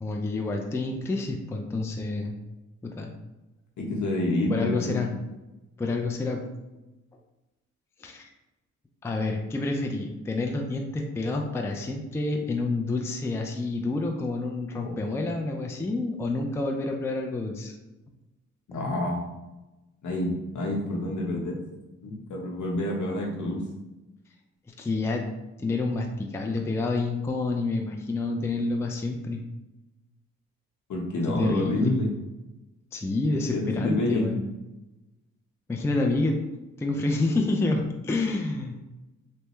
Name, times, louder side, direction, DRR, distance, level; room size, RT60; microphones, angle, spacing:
voice 1, 0.0-2.3 2.8-3.1 4.5-5.1 5.8-6.5 8.0-8.3 9.0-17.7 24.8-25.2 25.6-29.4 31.3-32.0 32.9-34.4 35.7-36.4 36.8-38.7, left 2 dB, 10° left, 2 dB, 0.4 m, -28 dB
voice 2, 3.8-5.1 18.7-19.2 20.0-21.6 22.0-23.6 30.9-32.1 33.5-34.3, left 1 dB, 65° left, -1 dB, 0.9 m, -28 dB
3.3 x 2.2 x 3.0 m, 1.0 s
cardioid pair, 70°, 32 cm